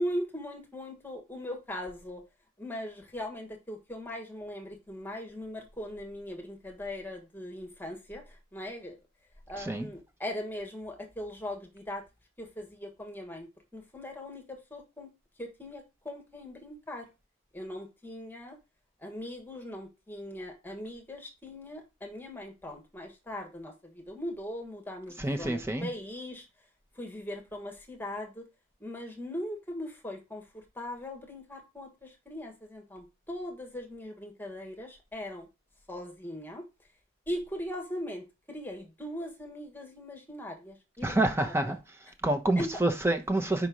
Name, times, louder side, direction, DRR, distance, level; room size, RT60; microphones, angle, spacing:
voice 1, 0.0-2.2 2.6-8.2 8.5-9.0 9.5-12.0 12.4-13.5 13.7-15.1 15.4-17.1 17.5-18.6 19.0-26.4 27.0-28.5 28.8-35.5 35.9-36.6 37.3-41.8 42.5-42.7, left 1 dB, 10° left, 1.5 m, -39 dB
voice 2, 9.6-9.9 25.2-25.9 41.0-41.8 42.2-43.7, right 2 dB, 10° right, 0.9 m, -27 dB
5.3 x 4.4 x 6.1 m
head